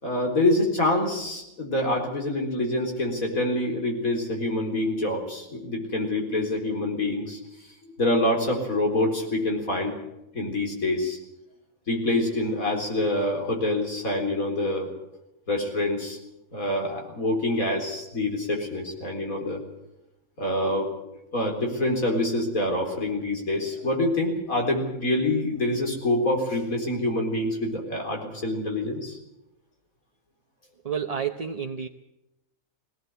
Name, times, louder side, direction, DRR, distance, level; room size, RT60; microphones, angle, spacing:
voice 1, 0.0-7.4 7.8-10.0 10.3-11.2 11.9-14.9 15.5-16.2 16.5-19.6 20.4-20.9 21.3-29.2, left 1 dB, 85° left, 1 dB, 4.5 m, -26 dB
voice 2, 30.8-31.9, right 7 dB, 35° right, 4 dB, 0.8 m, -30 dB
19.5 x 18.0 x 8.1 m, 0.90 s
omnidirectional pair, 1.4 m